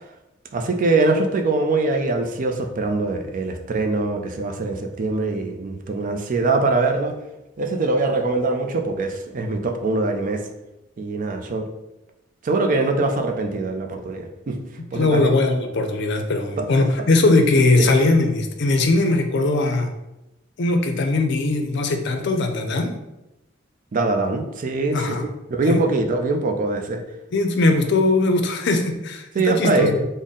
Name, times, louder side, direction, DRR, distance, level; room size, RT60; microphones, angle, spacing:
voice 1, 0.5-7.2 7.6-10.4 11.0-11.7 12.4-14.6 14.9-15.3 16.6-16.7 17.8-17.9 23.9-25.0 25.5-27.0 29.4-30.0, right 3 dB, 45° right, 4 dB, 0.4 m, -22 dB
voice 2, 14.9-19.9 20.6-22.9 24.9-25.2 25.7-25.8 27.3-30.1, left 2 dB, 60° left, 5 dB, 0.5 m, -20 dB
4.0 x 2.0 x 3.6 m, 0.94 s
head